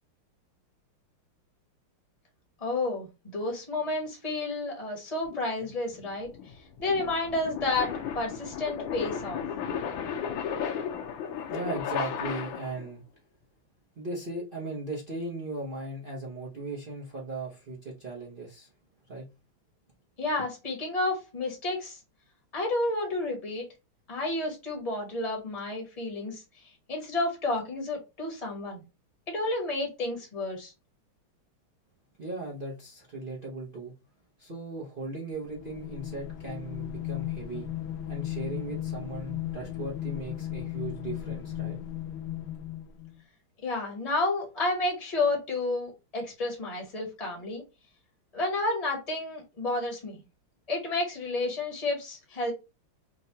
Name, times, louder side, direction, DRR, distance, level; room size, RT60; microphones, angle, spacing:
voice 1, 2.6-9.4 20.2-22.0 22.5-23.6 24.1-28.8 29.3-30.7 43.6-47.6 48.3-50.2 50.7-52.5, left 2 dB, 25° left, 0.8 m, -31 dB
sound 1, 5.3-12.9, left 7 dB, 70° left, 1.4 m, -35 dB
voice 2, 11.5-13.0 14.0-18.7 19.1-19.3 32.2-33.9 34.4-37.7 38.1-41.8, right 2 dB, 75° right, 0.4 m, -37 dB
sound 2, 35.5-43.2, left 12 dB, 90° left, 1.5 m, -36 dB
4.7 x 2.2 x 2.7 m
omnidirectional pair, 2.3 m